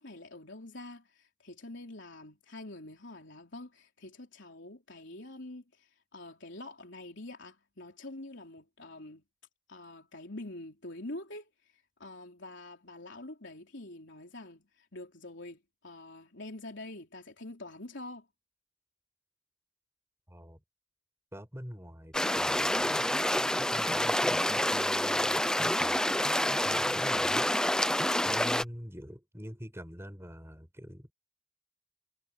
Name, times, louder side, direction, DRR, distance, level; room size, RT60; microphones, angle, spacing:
voice 1, 0.0-9.2 9.7-11.5 12.0-18.3, left 2 dB, 60° left, 4.0 m, -46 dB
voice 2, 20.3-20.6 21.3-22.9 23.7-26.0 26.6-27.5 28.2-31.1, equal, 10° right, 7.4 m, -45 dB
sound 1, 22.1-28.6, left 1 dB, 5° left, 0.7 m, -28 dB
head